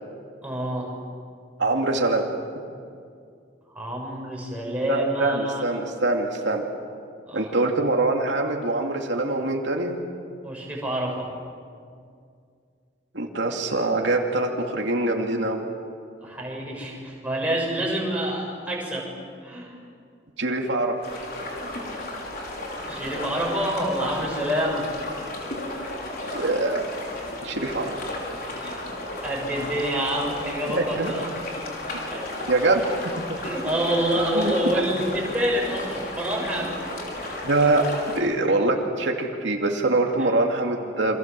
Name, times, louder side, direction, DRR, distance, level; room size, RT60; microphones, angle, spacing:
voice 1, 0.4-0.9 3.7-5.6 7.3-7.4 10.4-11.3 16.2-19.1 19.4-19.7 22.9-24.9 28.6-28.9 29.2-31.2 31.6-32.5 33.4-36.8 40.2-40.3, right 1 dB, 10° right, -3 dB, 7.2 m, -27 dB
voice 2, 1.6-2.3 4.9-6.6 7.3-10.0 13.1-15.6 20.4-21.0 26.3-27.0 27.4-28.0 30.7-31.1 32.5-32.9 34.3-34.8 37.4-41.2, right 2 dB, 80° right, 1 dB, 2.7 m, -24 dB
sound 1, 21.0-38.2, left 1 dB, 50° left, 5.6 m, -34 dB
29.0 x 27.0 x 7.7 m, 2.3 s
head